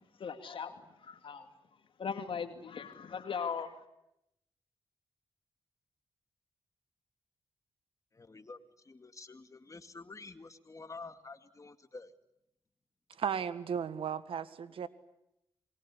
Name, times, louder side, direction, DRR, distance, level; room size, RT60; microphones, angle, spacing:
voice 1, 0.2-1.5 2.0-3.8, left 6 dB, 70° left, 7 dB, 2.3 m, -39 dB
voice 2, 8.1-8.6 8.8-12.1, left 3 dB, 35° left, 9 dB, 2.3 m, -49 dB
voice 3, 13.2-14.9, right 7 dB, 80° right, 14 dB, 1.6 m, -35 dB
27.0 x 21.5 x 9.8 m, 0.83 s
cardioid pair, 60°, 9 cm